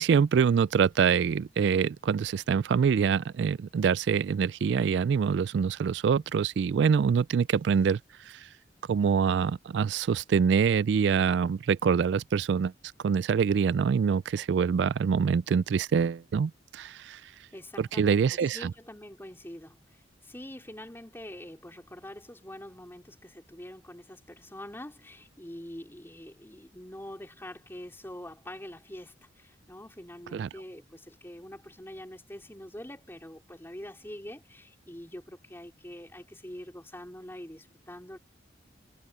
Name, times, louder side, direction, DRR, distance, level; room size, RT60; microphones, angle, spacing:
voice 1, 0.0-8.5 8.9-12.7 13.0-17.3 17.8-18.7 30.3-30.5, right 6 dB, 70° right, 0.3 m, -25 dB
voice 2, 17.5-38.2, left 1 dB, 15° left, 4.2 m, -45 dB
head